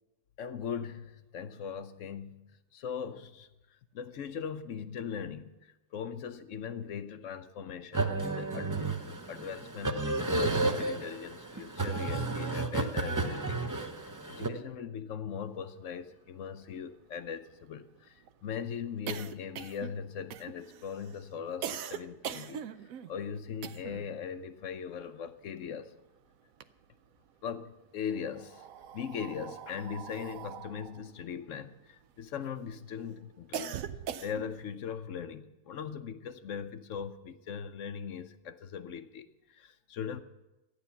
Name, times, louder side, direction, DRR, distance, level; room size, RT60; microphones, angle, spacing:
voice 1, 0.4-2.4 2.7-3.5 3.9-5.5 5.9-13.6 14.0-18.1 18.4-22.7 23.1-25.9 27.4-28.6 28.9-33.9 34.2-40.2, left 7 dB, 60° left, 11 dB, 0.8 m, -40 dB
sound 1, 7.9-14.5, right 2 dB, 25° right, 0.4 m, -32 dB
sound 2, 15.9-16.0 16.3-16.4 16.7-24.2 24.4-26.0 26.3-27.3 28.0-32.5 32.9-34.7, right 9 dB, 65° right, 0.9 m, -42 dB
14.0 x 10.0 x 7.0 m, 1.0 s
omnidirectional pair, 1.8 m